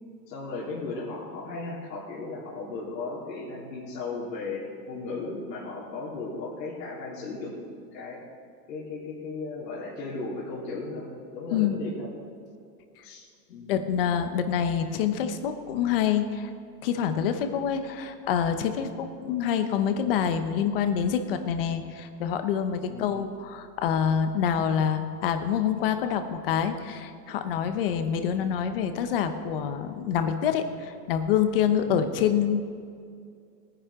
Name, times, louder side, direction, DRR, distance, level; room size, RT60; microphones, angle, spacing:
voice 1, 0.3-8.2 8.7-11.1 11.3-12.1 13.0-13.2 13.5-13.7 22.9-23.2 31.9-32.1, left 3 dB, 75° left, -6 dB, 3.5 m, -36 dB
voice 2, 13.7-16.5 16.8-32.6, left 8 dB, 35° left, 8 dB, 0.8 m, -26 dB
19.5 x 10.0 x 3.6 m, 2.3 s
supercardioid pair, 175°, 49 cm